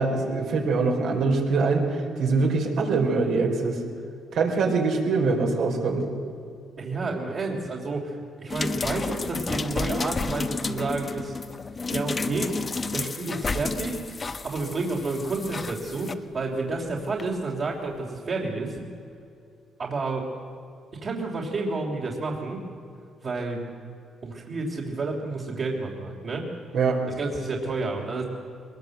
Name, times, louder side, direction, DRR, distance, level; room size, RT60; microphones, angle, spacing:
voice 1, 0.0-3.8 4.3-6.1 26.7-27.0, right 4 dB, 75° right, 1 dB, 4.5 m, -23 dB
voice 2, 6.8-11.3 11.9-12.6 12.9-14.0 14.4-18.8 19.8-20.3 21.0-22.6 23.2-23.6 24.2-26.4 27.1-28.2, right 3 dB, 50° right, -4 dB, 3.3 m, -30 dB
sound 1, 8.5-16.1 17.2-17.3, left 4 dB, 30° left, 1.0 m, -31 dB
22.0 x 21.0 x 8.0 m, 2.5 s
cardioid pair, 90°, 0 cm